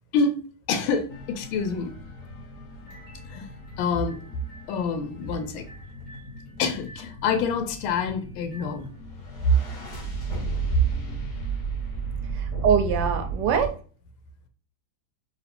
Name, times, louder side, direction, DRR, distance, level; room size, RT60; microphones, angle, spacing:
voice 1, 0.7-1.9 3.3-3.5 3.8-4.2 4.7-5.7 6.6-8.9 9.4-9.5, left 4 dB, 90° left, 7 dB, 1.4 m, -26 dB
sound 1, 1.1-13.7, right 4 dB, 55° left, 2.0 m, -34 dB
voice 2, 12.3-13.7, right 7 dB, 70° right, 6 dB, 1.1 m, -24 dB
3.9 x 2.6 x 3.4 m, 0.41 s
omnidirectional pair, 2.2 m